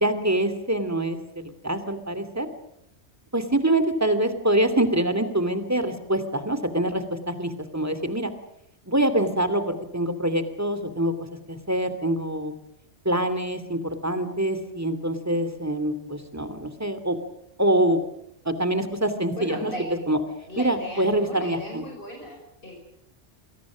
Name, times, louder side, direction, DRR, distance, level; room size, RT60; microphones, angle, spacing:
voice 1, 0.0-2.5 3.3-8.3 8.9-11.1 11.5-12.5 13.0-17.2 17.6-18.0 18.4-19.7 20.1-20.2 20.6-21.8, right 1 dB, 15° right, 9 dB, 2.7 m, -25 dB
voice 2, 19.3-19.9 20.5-22.7, equal, 45° left, 1 dB, 5.8 m, -37 dB
29.0 x 22.5 x 6.3 m, 0.78 s
omnidirectional pair, 1.2 m